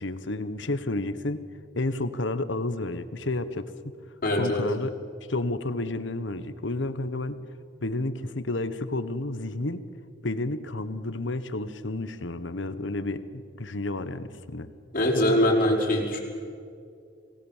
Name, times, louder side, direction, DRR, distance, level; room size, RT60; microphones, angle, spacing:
voice 1, 0.0-1.5 1.8-3.9 4.3-5.0 5.3-7.4 7.8-9.9 10.2-14.7, left 2 dB, 75° left, 12 dB, 1.2 m, -31 dB
voice 2, 4.2-4.6 14.9-16.2, left 1 dB, 50° left, -2 dB, 5.1 m, -22 dB
26.5 x 18.5 x 7.4 m, 2.3 s
head